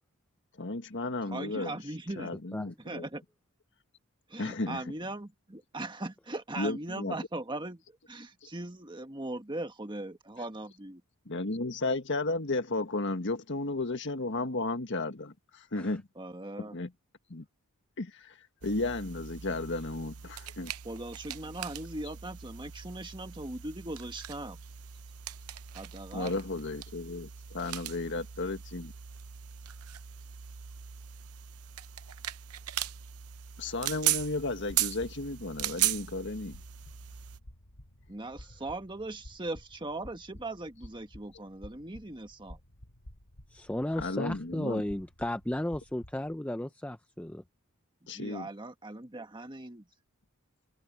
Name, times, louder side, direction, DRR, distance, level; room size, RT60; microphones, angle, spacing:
voice 1, 0.6-1.8 2.2-3.1 4.4-4.9 6.6-7.1 8.4-8.5 11.2-16.1 16.7-16.9 17.3-17.4 18.0-20.7 26.1-28.9 33.6-36.6 44.0-44.8 48.1-48.5, left 2 dB, 55° left, 1.6 m, -34 dB
voice 2, 1.3-2.3 2.8-3.2 4.3-11.0 16.2-16.8 20.8-24.6 25.7-26.3 38.1-42.6 48.1-49.8, right 2 dB, 20° right, 1.6 m, -39 dB
sound 1, 18.6-37.4, right 12 dB, 90° right, 0.7 m, -38 dB
sound 2, 34.6-46.4, left 1 dB, 85° left, 4.7 m, -53 dB
voice 3, 43.5-47.4, left 1 dB, 5° left, 0.5 m, -34 dB
head